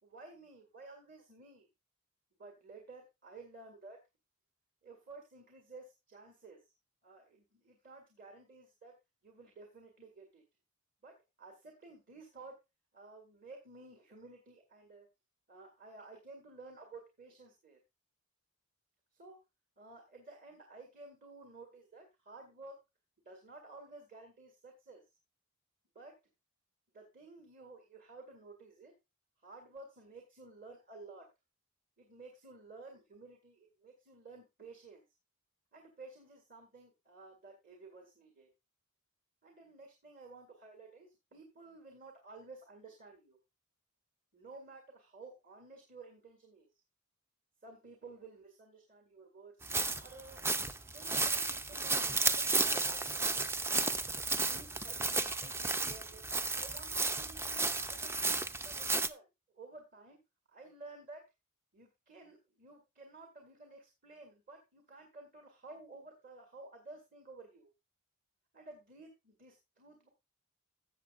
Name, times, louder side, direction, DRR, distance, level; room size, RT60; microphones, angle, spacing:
voice 1, 0.0-1.7 2.4-4.0 4.8-6.6 7.0-8.9 9.2-10.4 11.0-12.5 12.9-15.1 15.5-17.8 19.1-19.4 19.8-22.8 23.2-25.0 26.0-26.1 26.9-28.9 29.4-31.3 32.0-35.0 35.7-38.5 39.4-43.4 44.3-46.7 47.6-49.6 50.0-50.4 50.9-53.3 54.5-56.2 56.5-59.3 59.6-60.2 60.5-61.2 61.7-67.7 68.5-70.1, right 3 dB, 40° right, 3 dB, 1.8 m, -53 dB
sound 1, 49.6-59.1, right 3 dB, 10° right, 0.4 m, -33 dB
14.5 x 7.5 x 2.5 m, 0.24 s
head